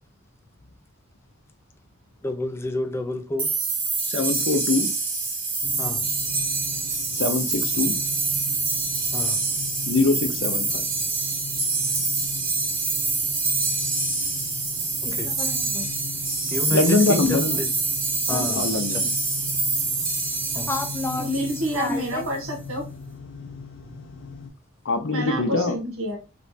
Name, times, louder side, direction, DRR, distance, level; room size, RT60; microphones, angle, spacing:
voice 1, 2.2-3.5 5.8-6.1 9.1-9.4 15.0-15.9 16.5-17.7 18.3-19.1 20.5-22.3, left 2 dB, 10° left, 0.3 m, -30 dB
sound 1, 3.4-22.1, right 3 dB, 45° right, 1.2 m, -26 dB
voice 2, 4.1-4.9 7.1-7.9 9.9-10.9 16.7-17.6 18.3-19.0 24.8-25.8, left 3 dB, 60° left, 0.6 m, -23 dB
sound 2, 5.6-24.5, left 4 dB, 85° left, 0.9 m, -39 dB
voice 3, 21.2-22.8 25.1-26.2, equal, 80° right, 1.1 m, -28 dB
3.3 x 3.0 x 2.7 m
head